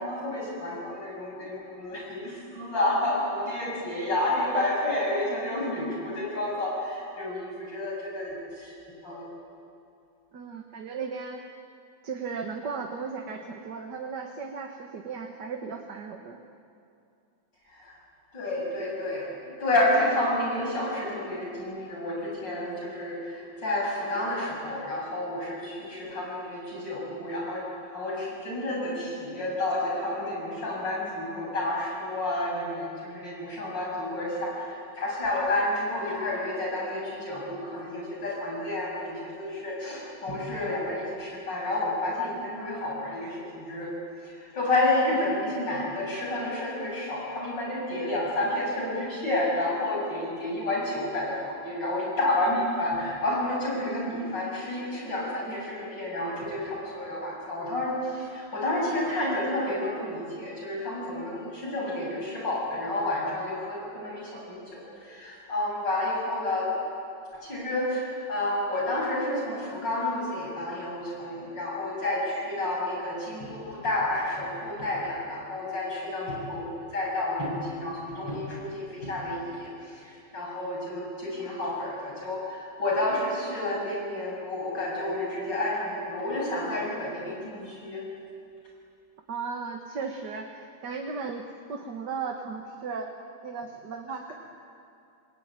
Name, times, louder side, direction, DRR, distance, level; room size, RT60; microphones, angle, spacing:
voice 1, 0.0-8.7 9.0-9.3 17.7-18.0 18.3-43.9 44.2-66.7 67.3-88.1, left 1 dB, 70° left, -3 dB, 7.7 m, -30 dB
voice 2, 10.3-11.4 12.0-16.4 89.3-93.1 93.4-94.3, right 5 dB, 65° right, 3 dB, 2.0 m, -36 dB
27.5 x 20.0 x 9.7 m, 2.5 s
omnidirectional pair, 2.0 m